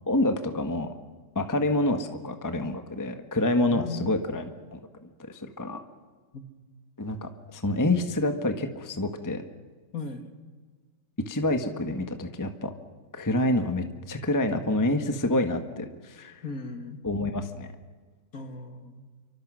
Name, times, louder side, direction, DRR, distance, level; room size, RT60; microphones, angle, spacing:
voice 1, 0.1-0.9 1.3-5.8 7.0-9.4 11.3-12.7 13.1-16.4 17.0-17.7, left 1 dB, 10° left, 7 dB, 1.3 m, -27 dB
voice 2, 3.7-4.1 6.3-6.5 9.9-10.3 16.4-17.0 18.3-19.1, left 3 dB, 45° left, 7 dB, 2.2 m, -37 dB
29.0 x 24.0 x 6.4 m, 1.4 s
omnidirectional pair, 2.3 m